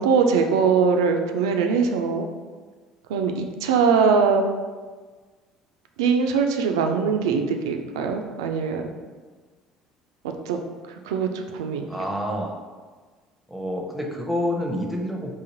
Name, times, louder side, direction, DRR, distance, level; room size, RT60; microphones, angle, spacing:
voice 1, 0.0-2.3 3.1-4.4 6.0-8.8 10.5-10.6 11.0-11.8, right 5 dB, 70° right, 5 dB, 0.3 m, -21 dB
voice 2, 11.9-12.6 13.5-15.3, equal, ahead, 1 dB, 0.6 m, -28 dB
3.9 x 2.5 x 2.8 m, 1.4 s
figure-of-eight pair, 55°, 3 cm